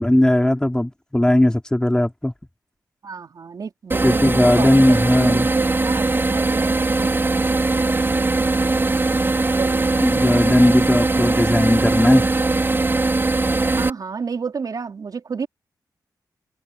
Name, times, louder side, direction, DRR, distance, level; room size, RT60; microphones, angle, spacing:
voice 1, 0.0-2.3 4.0-5.5 10.0-12.3, left 1 dB, 10° left, 4.5 m, -17 dB
voice 2, 3.0-7.1 7.8-8.3 9.4-10.1 11.2-11.5 13.7-15.5, right 5 dB, 60° right, 4.2 m, -32 dB
sound 1, 3.9-13.9, right 3 dB, 30° right, 4.6 m, -20 dB
cardioid pair, 85°, 7 cm